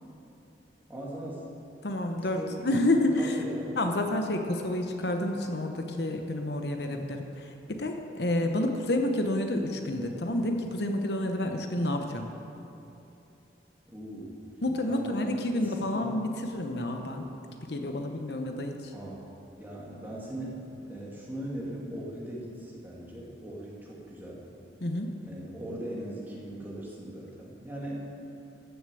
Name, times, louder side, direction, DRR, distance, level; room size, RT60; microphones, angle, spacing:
voice 1, 0.9-1.5 2.2-2.9 3.2-3.7 13.9-14.4 14.8-15.1 15.6-16.3 18.9-19.2 19.6-20.6 20.9-24.5 25.2-28.1, right 1 dB, 10° right, -5 dB, 2.4 m, -39 dB
voice 2, 1.8-2.4 2.6-3.4 3.8-12.3 14.6-17.3 17.7-18.9 24.8-25.1, left 1 dB, 60° left, 4 dB, 1.0 m, -29 dB
14.5 x 6.9 x 7.6 m, 2.9 s
head